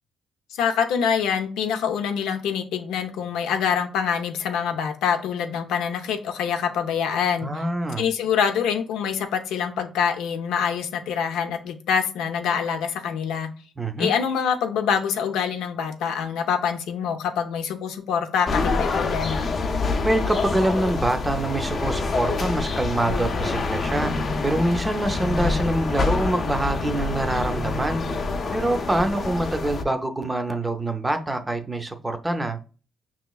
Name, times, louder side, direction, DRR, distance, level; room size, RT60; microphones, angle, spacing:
voice 1, 0.6-7.5 8.0-13.5 14.0-19.5, left 7 dB, 90° left, 0.6 m, -25 dB
voice 2, 7.4-8.1 13.8-14.1 20.0-24.1 24.4-28.0 28.5-32.6, right 1 dB, 15° right, 0.6 m, -25 dB
sound 1, 18.5-29.8, left 3 dB, 45° left, 0.6 m, -26 dB
5.6 x 3.0 x 2.3 m
cardioid pair, 90°, 0 cm